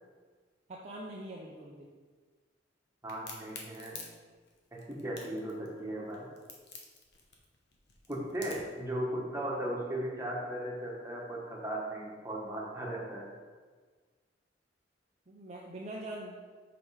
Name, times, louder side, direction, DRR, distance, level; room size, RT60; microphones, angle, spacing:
voice 1, 0.7-1.9 15.3-16.3, right 1 dB, 35° right, -3 dB, 0.7 m, -43 dB
voice 2, 3.0-4.0 4.7-6.3 8.1-13.3, right 1 dB, 15° right, -4 dB, 1.4 m, -37 dB
Crack, 3.1-8.8, left 5 dB, 60° left, 1.1 m, -48 dB
5.9 x 5.3 x 4.9 m, 1.5 s
head